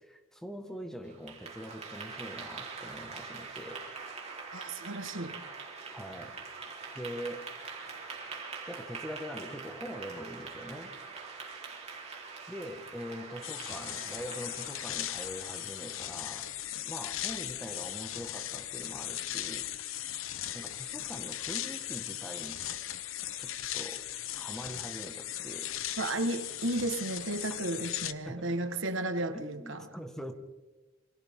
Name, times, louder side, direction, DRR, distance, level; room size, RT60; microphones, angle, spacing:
voice 1, 0.0-3.9 5.9-6.4 6.9-7.5 8.7-10.9 12.5-16.5 16.8-19.7 20.5-22.6 23.4-24.0 24.3-25.8 28.2-28.5 29.2-30.3, equal, 5° left, 1.7 m, -43 dB
Clapping / Applause, 1.0-16.3, right 4 dB, 35° right, 3.9 m, -44 dB
voice 2, 4.5-5.4 26.0-29.9, right 1 dB, 70° right, 1.6 m, -33 dB
sound 1, 13.4-28.1, left 12 dB, 80° left, 0.9 m, -38 dB
28.5 x 24.5 x 3.7 m
head